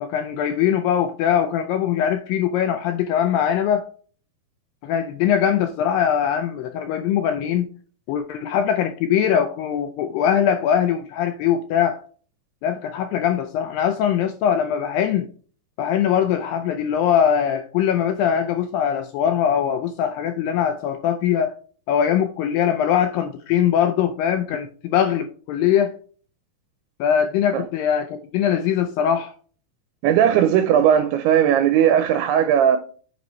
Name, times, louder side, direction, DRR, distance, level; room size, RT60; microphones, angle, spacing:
voice 1, 0.0-3.9 4.8-7.7 8.1-12.0 12.6-15.3 15.8-21.5 21.9-25.9 27.0-29.3, left 9 dB, 85° left, 2.0 m, -21 dB
voice 2, 30.0-32.8, right 9 dB, 90° right, 2.6 m, -17 dB
7.7 x 5.4 x 3.0 m
omnidirectional pair, 4.5 m